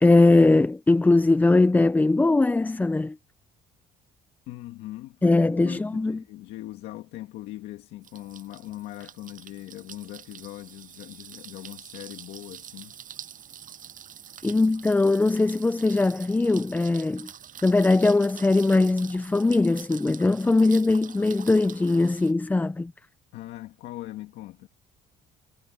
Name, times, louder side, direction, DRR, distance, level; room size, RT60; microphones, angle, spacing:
voice 1, 0.0-3.2 5.2-6.2 14.4-17.3 17.6-22.9, left 2 dB, 10° left, 0.4 m, -20 dB
voice 2, 4.5-13.0 23.3-24.7, left 16 dB, 85° left, 1.9 m, -40 dB
sound 1, 8.0-22.3, right 9 dB, 55° right, 6.9 m, -46 dB
cardioid pair, 110°, 17 cm